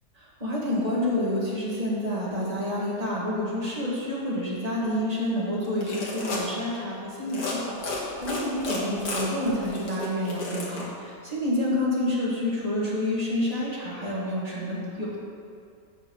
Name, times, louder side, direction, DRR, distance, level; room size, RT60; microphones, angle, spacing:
voice 1, 0.2-15.2, left 1 dB, 25° right, -6 dB, 1.6 m, -28 dB
sound 1, 5.6-6.5 7.2-7.5 7.8-10.8, left 2 dB, 65° left, 1.8 m, -32 dB
6.3 x 5.2 x 6.2 m, 2.4 s
omnidirectional pair, 1.7 m